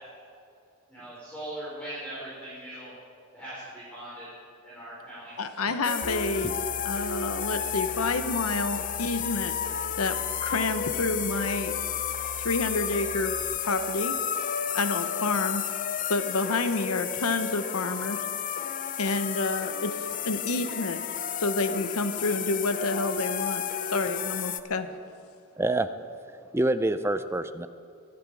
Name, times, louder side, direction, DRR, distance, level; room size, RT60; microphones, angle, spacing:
voice 1, 0.9-2.9 3.3-4.3 4.6-5.3, right 1 dB, 5° left, -10 dB, 4.7 m, -40 dB
voice 2, 5.4-9.5 10.0-11.7 12.4-13.3 13.7-14.1 14.7-15.6 16.1-18.2 19.0-20.0 20.2-21.0 21.4-23.6 23.9-24.9, left 3 dB, 85° left, 9 dB, 1.0 m, -29 dB
sound 1, 5.8-24.6, left 8 dB, 40° left, 0.5 m, -32 dB
sound 2, 6.0-13.4, right 6 dB, 90° right, 1.3 m, -43 dB
voice 3, 25.6-25.9 26.5-27.7, right 2 dB, 10° right, 11 dB, 0.5 m, -26 dB
22.5 x 10.5 x 4.9 m, 2.5 s
head